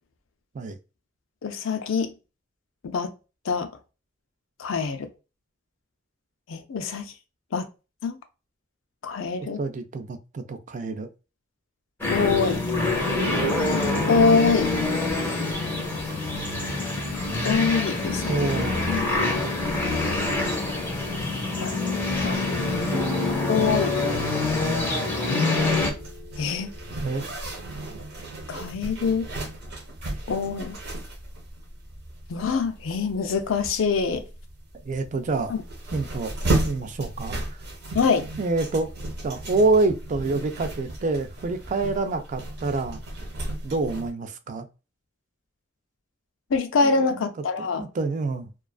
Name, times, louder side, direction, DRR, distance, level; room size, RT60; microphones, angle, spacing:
voice 1, 1.4-2.1 2.8-3.1 3.5-3.7 4.6-5.1 6.5-7.1 7.5-7.7 8.0-8.2 9.0-9.6 12.1-12.6 14.1-15.0 17.4-18.6 18.9-19.4 21.6-21.7 22.2-22.4 23.5-24.3 26.4-26.7 28.5-29.3 30.3-30.7 32.3-34.2 35.5-35.6 37.9-38.3 46.5-47.9, left 5 dB, 90° left, 0.5 m, -24 dB
voice 2, 9.6-11.1 18.3-18.8 23.5-23.8 27.0-27.2 34.8-35.5 35.9-36.3 36.6-37.4 38.4-38.9 39.2-43.0 43.6-44.7 46.8-47.3 47.6-48.5, right 3 dB, 40° right, 0.4 m, -27 dB
sound 1, 12.0-25.9, left 2 dB, 10° left, 0.6 m, -25 dB
sound 2, 22.9-28.3, left 1 dB, 25° right, 0.8 m, -38 dB
Zipper (clothing), 25.7-44.1, right 2 dB, 60° right, 0.8 m, -34 dB
2.3 x 2.3 x 2.3 m
head